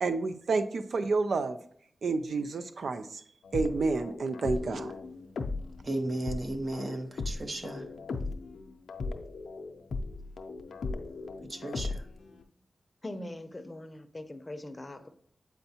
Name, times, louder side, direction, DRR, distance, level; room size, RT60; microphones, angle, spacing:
voice 1, 0.0-1.6 2.0-3.2 3.5-4.9, right 3 dB, 75° right, 0.4 m, -29 dB
sound 1, 3.4-12.4, left 3 dB, 85° left, 0.4 m, -38 dB
voice 2, 5.8-7.8 11.5-12.0, right 1 dB, 40° right, 0.8 m, -34 dB
voice 3, 13.0-15.1, left 1 dB, 25° left, 0.6 m, -41 dB
7.9 x 4.4 x 2.8 m
cardioid pair, 60°, 0 cm